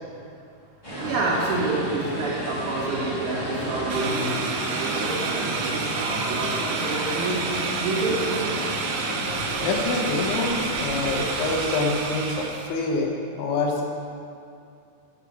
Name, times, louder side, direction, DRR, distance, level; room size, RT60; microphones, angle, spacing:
sound 1, 0.8-11.5, equal, 45° left, 0.4 m, -32 dB
voice 1, 1.0-7.4 7.8-8.5, right 3 dB, 70° right, -4 dB, 3.9 m, -28 dB
sound 2, 3.9-12.7, right 4 dB, 85° right, 3.1 m, -30 dB
voice 2, 9.3-13.8, left 3 dB, 85° left, 0 dB, 3.6 m, -26 dB
8.6 x 7.4 x 7.1 m, 2.4 s
omnidirectional pair, 5.3 m